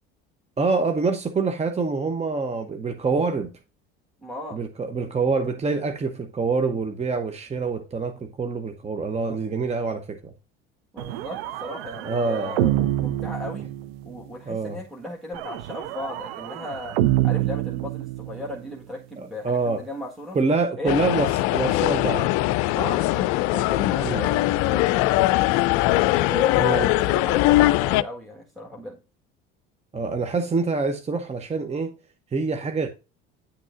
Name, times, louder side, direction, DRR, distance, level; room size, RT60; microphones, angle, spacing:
voice 1, 0.6-3.5 4.5-10.3 12.0-12.5 14.5-14.8 19.2-19.8 20.3-22.3 24.0-24.3 26.6-26.9 29.9-31.9 32.3-32.9, right 4 dB, 20° right, 0.8 m, -26 dB
voice 2, 4.2-4.6 10.9-13.7 14.0-17.0 17.2-20.4 20.8-21.0 22.8-25.3 26.3-29.0, left 1 dB, ahead, 1.5 m, -36 dB
sound 1, 11.0-14.2 15.3-18.6, right 14 dB, 75° right, 0.6 m, -27 dB
sound 2, 20.9-28.0, left 17 dB, 65° left, 0.5 m, -21 dB
10.0 x 6.1 x 2.5 m
hypercardioid pair, 70°, 31 cm